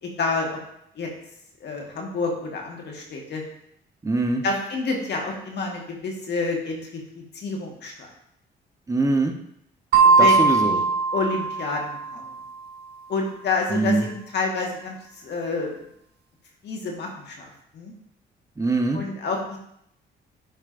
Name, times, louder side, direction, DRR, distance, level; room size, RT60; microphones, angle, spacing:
voice 1, 0.0-0.6 0.9-1.1 1.6-3.4 4.4-8.1 10.0-10.8 11.1-12.2 13.1-15.7 16.6-17.9 18.9-19.6, left 3 dB, 60° left, 0 dB, 1.5 m, -29 dB
voice 2, 4.0-4.4 8.9-9.3 10.2-10.8 13.7-14.0 18.6-19.0, right 2 dB, 15° right, 3 dB, 0.8 m, -23 dB
sound 1, 9.9-12.4, right 4 dB, 55° right, 1.3 m, -19 dB
10.5 x 4.4 x 2.5 m, 0.74 s
cardioid pair, 90°, 20 cm